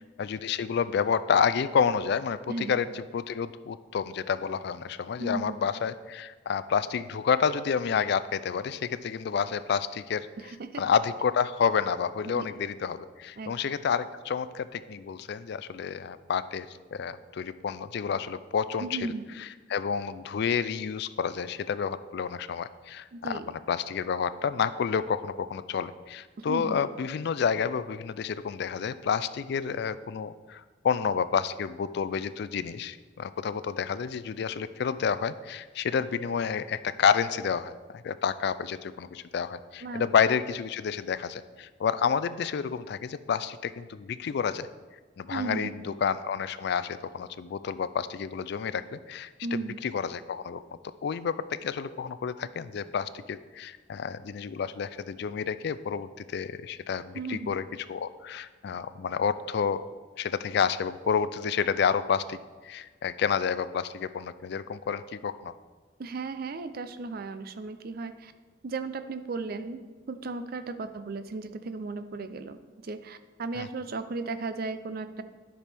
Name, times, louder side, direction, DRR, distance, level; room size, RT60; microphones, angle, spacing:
voice 1, 0.2-10.3 10.8-44.7 45.2-49.3 49.8-50.6 51.0-51.3 51.6-57.6 57.9-59.8 60.2-62.4 62.6-65.5 73.5-73.7, left 6 dB, 60° left, 14 dB, 0.3 m, -29 dB
voice 2, 2.5-2.8 5.2-5.6 10.4-10.8 12.3-12.5 13.4-13.5 18.8-19.2 23.1-23.5 26.5-26.8 39.8-40.0 45.3-45.7 49.4-49.8 57.1-57.5 66.0-68.3 68.6-75.2, right 3 dB, 50° right, 10 dB, 0.5 m, -35 dB
9.9 x 6.1 x 3.4 m, 1.4 s
head